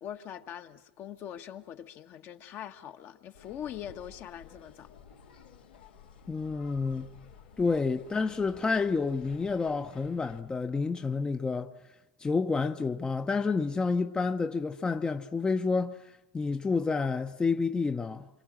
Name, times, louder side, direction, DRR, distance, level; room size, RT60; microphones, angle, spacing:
voice 1, 0.0-4.9, left 10 dB, 50° left, 1.5 m, -42 dB
sound 1, 3.3-10.4, left 6 dB, 85° left, 2.9 m, -53 dB
voice 2, 6.3-7.1 7.6-11.7 12.2-16.0 16.3-18.3, left 4 dB, 15° left, 0.9 m, -29 dB
28.0 x 25.0 x 6.3 m
hypercardioid pair, 85°, 5 cm